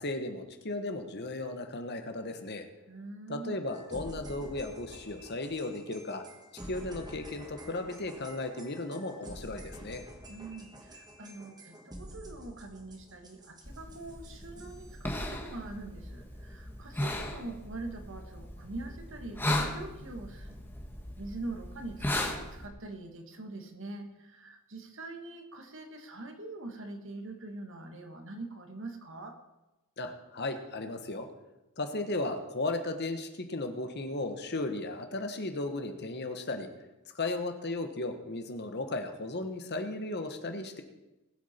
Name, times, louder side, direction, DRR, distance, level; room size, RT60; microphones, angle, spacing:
voice 1, 0.0-2.7 3.3-6.2 6.7-10.0 30.0-31.3 31.8-36.7 37.1-40.8, left 2 dB, 50° left, 6 dB, 1.4 m, -35 dB
voice 2, 2.9-3.6 10.3-20.6 21.2-29.4, right 2 dB, 60° right, 5 dB, 1.8 m, -43 dB
sound 1, 3.7-15.0, right 1 dB, 20° right, 1.4 m, -49 dB
sound 2, 13.6-22.7, left 1 dB, 10° left, 1.3 m, -37 dB
20.0 x 8.4 x 4.5 m, 1.0 s
head